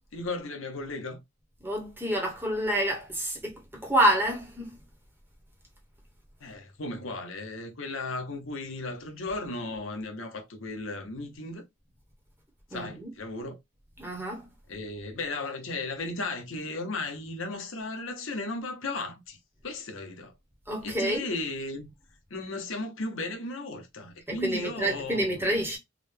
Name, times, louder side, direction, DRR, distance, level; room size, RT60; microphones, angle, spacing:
voice 1, 0.1-1.2 6.4-11.6 12.7-13.5 14.7-19.4 19.6-20.3 20.8-21.9 22.3-25.4, left 2 dB, 70° left, 0.8 m, -35 dB
voice 2, 1.6-4.8 12.7-13.1 14.0-14.5 20.7-21.2 24.3-25.8, right 1 dB, 10° right, 0.9 m, -28 dB
3.7 x 2.2 x 3.2 m
head